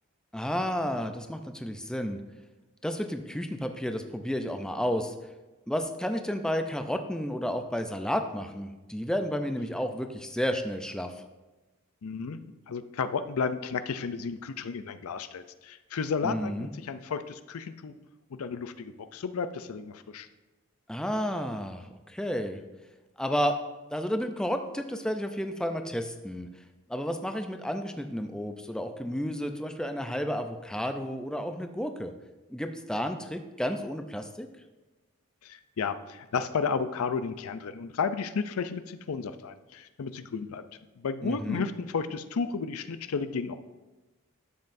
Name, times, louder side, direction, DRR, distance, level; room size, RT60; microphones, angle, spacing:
voice 1, 0.3-2.2 2.8-5.1 5.7-11.1 16.2-16.7 20.9-22.6 23.2-23.6 23.9-26.5 26.9-32.1 32.5-34.5 41.2-41.6, equal, 5° left, 6 dB, 0.4 m, -31 dB
voice 2, 12.0-12.4 12.7-17.9 18.3-20.3 35.4-40.6 41.0-43.6, left 5 dB, 85° left, 11 dB, 0.5 m, -33 dB
11.5 x 7.5 x 2.6 m, 1.1 s
head